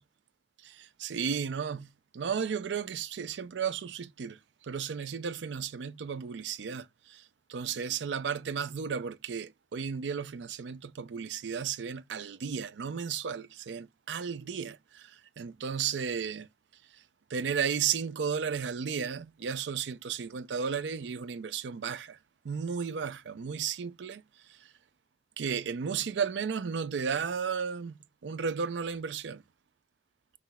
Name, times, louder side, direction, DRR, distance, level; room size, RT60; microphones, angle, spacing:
voice 1, 0.6-16.5 17.3-22.2 22.4-24.2 24.5-24.6 25.4-29.4, right 6 dB, 90° right, 0.4 m, -34 dB
5.7 x 3.2 x 2.3 m
head